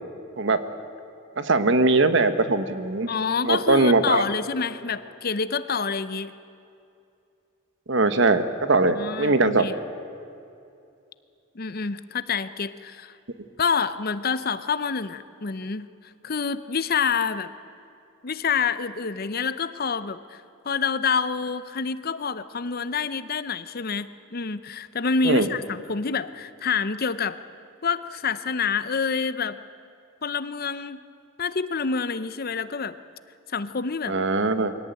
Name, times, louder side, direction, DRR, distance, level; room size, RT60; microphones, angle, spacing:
voice 1, 1.4-3.1 3.4-4.2 7.9-9.7 25.2-25.5 34.1-34.7, right 3 dB, 60° right, 10 dB, 1.3 m, -21 dB
voice 2, 3.1-6.3 8.9-9.7 11.5-13.1 13.6-15.9 16.2-17.5 18.2-27.4 27.8-29.6 30.2-31.0 31.4-33.0 33.5-34.2, left 5 dB, 45° left, 14 dB, 0.7 m, -27 dB
23.5 x 17.5 x 9.1 m, 2.6 s
head